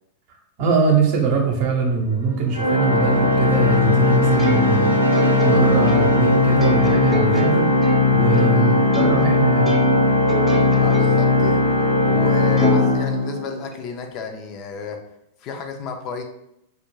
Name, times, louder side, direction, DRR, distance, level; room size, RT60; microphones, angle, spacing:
voice 1, 0.6-4.9 5.4-7.6 8.1-9.8, right 5 dB, 50° right, 1 dB, 0.7 m, -22 dB
sound 1, 1.5-9.3, right 2 dB, 90° right, 0.4 m, -30 dB
Organ, 2.5-13.7, left 2 dB, 90° left, 0.7 m, -18 dB
Plucked string instrument, 4.4-9.3 9.7-11.4 11.8-11.9 12.6-13.7, left 2 dB, 15° right, 0.5 m, -27 dB
voice 2, 10.8-11.6 12.1-15.0 15.4-16.2, left 4 dB, 45° left, 4 dB, 0.4 m, -32 dB
2.3 x 2.1 x 3.0 m, 0.81 s
hypercardioid pair, 105°, 0 cm